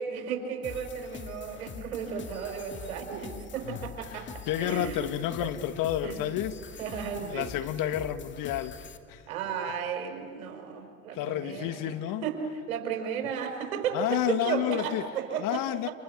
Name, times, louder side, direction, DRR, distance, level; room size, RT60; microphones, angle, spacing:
voice 1, 0.0-4.3 4.6-5.1 5.4-5.5 6.0-6.2 6.8-7.5 9.3-11.8 12.2-12.4 12.7-15.9, right 7 dB, 75° right, 5.6 m, -34 dB
sound 1, 0.6-9.0, left 6 dB, 25° left, 2.3 m, -44 dB
voice 2, 4.1-6.6 7.2-9.3 11.1-12.3 13.9-15.1 15.4-15.9, left 12 dB, 50° left, 1.7 m, -30 dB
29.5 x 28.0 x 6.7 m
hypercardioid pair, 90°, 42 cm